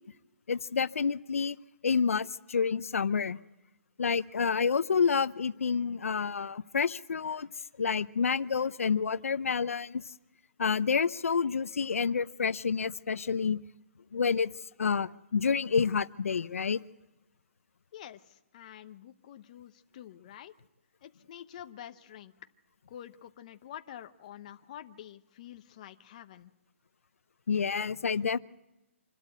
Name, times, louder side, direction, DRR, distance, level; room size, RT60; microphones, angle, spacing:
voice 1, 0.5-1.6 1.8-3.4 4.0-7.5 7.8-10.0 10.6-13.6 14.1-14.5 14.8-16.8 27.5-28.4, left 6 dB, 85° left, 15 dB, 0.6 m, -28 dB
voice 2, 17.9-20.5 21.0-22.3 22.9-26.5, left 11 dB, 30° left, 8 dB, 0.8 m, -48 dB
26.0 x 12.5 x 8.0 m, 0.98 s
hypercardioid pair, 165°, 7 cm